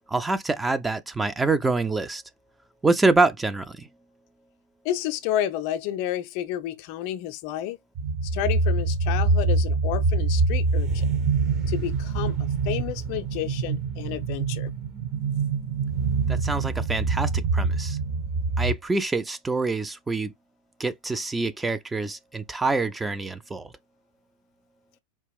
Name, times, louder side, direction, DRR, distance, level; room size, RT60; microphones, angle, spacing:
voice 1, 0.1-2.2 2.8-3.9 16.3-18.0 18.6-20.3 20.8-23.7, right 3 dB, 10° right, 0.4 m, -26 dB
voice 2, 4.8-7.8 8.3-11.1 11.7-14.7, left 12 dB, 45° left, 0.5 m, -30 dB
sound 1, 8.0-18.8, right 4 dB, 40° right, 0.8 m, -25 dB
4.2 x 2.4 x 3.4 m
figure-of-eight pair, 90°, 0 cm